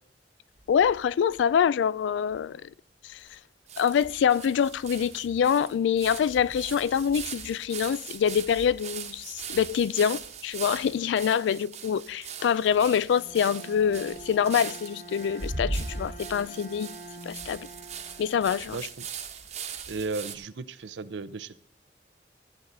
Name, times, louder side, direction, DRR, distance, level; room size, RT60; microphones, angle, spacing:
sound 1, 0.6-1.5 2.0-2.1 2.3-2.4 3.3-3.4 3.7-20.4, right 5 dB, 40° right, 1.0 m, -39 dB
voice 1, 0.7-2.7 3.0-3.2 3.8-16.9 17.3-17.6 18.2-18.8, left 8 dB, 90° left, 0.3 m, -25 dB
Bowed string instrument, 13.1-19.1, right 2 dB, 50° left, 1.6 m, -46 dB
voice 2, 18.7-19.1 19.5-21.6, right 3 dB, 85° right, 0.5 m, -36 dB
14.0 x 8.0 x 3.9 m
head